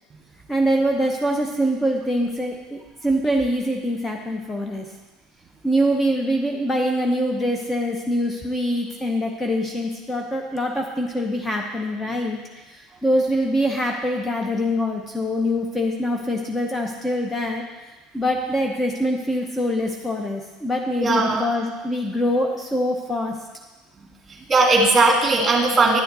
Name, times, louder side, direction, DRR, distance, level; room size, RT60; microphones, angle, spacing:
voice 1, 0.5-4.9 5.6-17.6 18.1-23.3, equal, 15° left, 2 dB, 0.9 m, -24 dB
voice 2, 21.0-21.4 24.5-26.0, right 3 dB, 25° right, 0 dB, 2.1 m, -17 dB
10.5 x 6.8 x 4.1 m, 1.2 s
hypercardioid pair, 80°, 0 cm